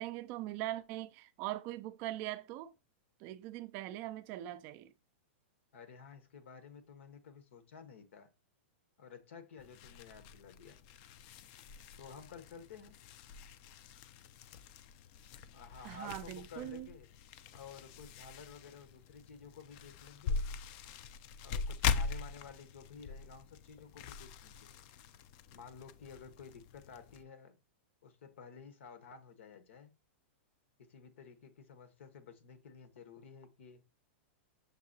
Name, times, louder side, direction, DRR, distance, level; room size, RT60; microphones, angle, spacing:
voice 1, 0.0-2.7 3.2-4.9 15.8-16.9, right 15 dB, 35° right, 0.3 m, -41 dB
voice 2, 5.7-8.3 9.0-10.8 12.0-13.0 15.5-17.1 17.5-20.4 21.4-24.7 25.5-27.6 28.0-29.9 30.8-33.8, left 6 dB, 80° left, 1.0 m, -53 dB
sound 1, 9.6-27.2, left 6 dB, 35° left, 0.3 m, -42 dB
6.5 x 2.8 x 2.7 m
supercardioid pair, 155°, 7 cm